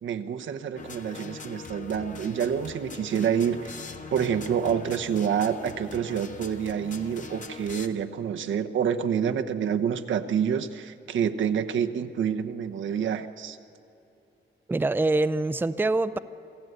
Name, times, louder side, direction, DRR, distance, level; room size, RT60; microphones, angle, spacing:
voice 1, 0.0-3.7 4.1-13.6, right 8 dB, 90° right, 6 dB, 1.0 m, -27 dB
sound 1, 0.8-7.9, left 4 dB, 40° left, 1.3 m, -42 dB
voice 2, 14.7-16.2, right 2 dB, 10° right, 12 dB, 0.5 m, -24 dB
27.5 x 15.5 x 8.1 m, 2.8 s
wide cardioid pair, 140°, 19 cm